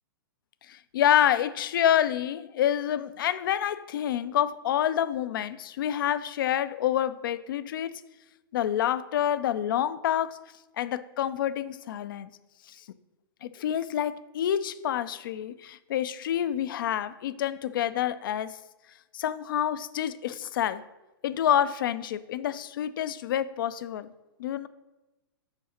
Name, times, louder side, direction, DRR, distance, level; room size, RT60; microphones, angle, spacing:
voice 1, 0.7-8.0 8.5-10.4 10.8-12.3 12.7-12.8 13.4-18.6 19.1-20.8 21.2-24.1 24.4-24.7, left 10 dB, 60° left, 15 dB, 0.4 m, -27 dB
5.7 x 4.8 x 5.6 m, 1.1 s
hypercardioid pair, 120°, 12 cm